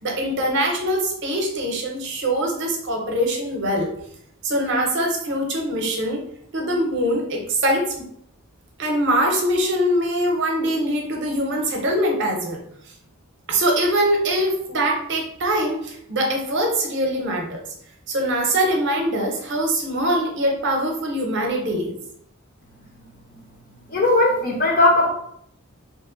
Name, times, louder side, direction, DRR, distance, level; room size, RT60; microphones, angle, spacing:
voice 1, 0.0-3.9 4.4-6.2 6.5-8.0 8.8-12.6 13.5-17.6 18.1-22.0, right 1 dB, 50° right, 1 dB, 0.6 m, -23 dB
voice 2, 23.9-25.1, left 2 dB, 40° left, -2 dB, 0.7 m, -17 dB
2.8 x 2.1 x 3.6 m, 0.69 s
head